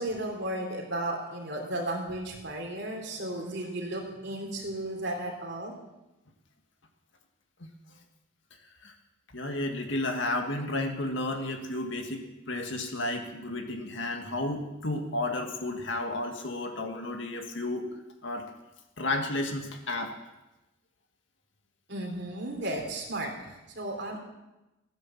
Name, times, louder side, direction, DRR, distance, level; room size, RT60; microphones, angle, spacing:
voice 1, 0.0-5.7 21.9-24.2, right 1 dB, 55° right, 2 dB, 3.3 m, -34 dB
voice 2, 9.3-17.9 18.2-18.4 19.0-20.1, left 2 dB, 65° left, 4 dB, 2.1 m, -32 dB
15.5 x 9.8 x 7.4 m, 1.0 s
head